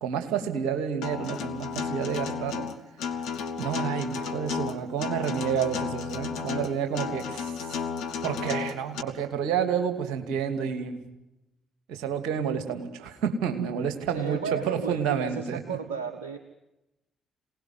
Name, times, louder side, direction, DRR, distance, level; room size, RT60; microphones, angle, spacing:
voice 1, 0.0-2.7 3.6-7.7 8.2-11.0 11.9-15.8, right 7 dB, 65° right, 8 dB, 2.6 m, -29 dB
Acoustic guitar, 1.0-9.0, left 6 dB, 70° left, 1.9 m, -33 dB
voice 2, 14.1-16.4, right 5 dB, 85° right, 8 dB, 1.1 m, -34 dB
27.0 x 19.0 x 9.7 m, 0.93 s
figure-of-eight pair, 40°, 0 cm